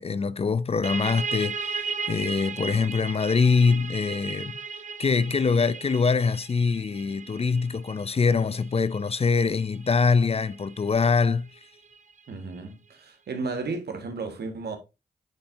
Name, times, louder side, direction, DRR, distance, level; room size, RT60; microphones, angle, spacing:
voice 1, 0.0-4.5 5.0-11.5, left 5 dB, 35° left, 0.4 m, -24 dB
sound 1, 0.8-12.2, right 5 dB, 45° right, 0.7 m, -36 dB
voice 2, 12.3-14.8, right 4 dB, 75° right, 1.4 m, -33 dB
8.8 x 4.3 x 2.6 m
cardioid pair, 45°, 17 cm